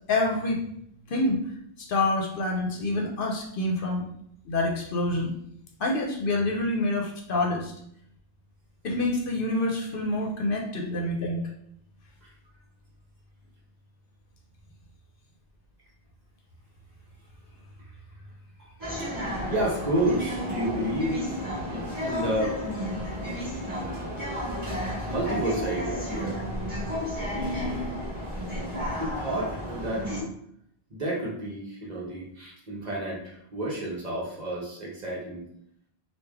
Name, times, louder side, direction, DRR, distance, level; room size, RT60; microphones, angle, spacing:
voice 1, 0.1-0.6 1.1-1.4 1.8-4.0 4.4-5.3 5.8-7.7 8.8-11.4, left 2 dB, 65° left, 1 dB, 0.7 m, -27 dB
sound 1, 18.8-30.2, equal, 20° right, 1.4 m, -32 dB
voice 2, 19.2-21.2 21.7-22.6 25.1-26.5 27.3-28.1 28.9-30.2 30.9-35.5, right 1 dB, 45° right, -4 dB, 1.0 m, -30 dB
3.2 x 2.3 x 3.4 m, 0.70 s
omnidirectional pair, 1.1 m